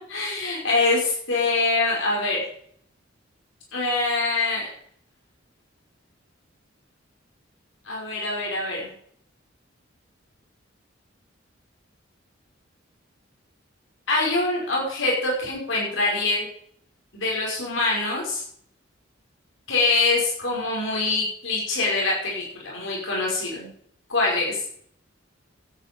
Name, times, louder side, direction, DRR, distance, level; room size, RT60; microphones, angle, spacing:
voice 1, 0.1-2.4 3.7-4.7 7.9-8.9 14.1-16.5 17.1-18.4 19.7-23.7 24.1-24.6, left 3 dB, 75° left, -3 dB, 5.7 m, -24 dB
13.5 x 9.4 x 5.4 m, 0.63 s
head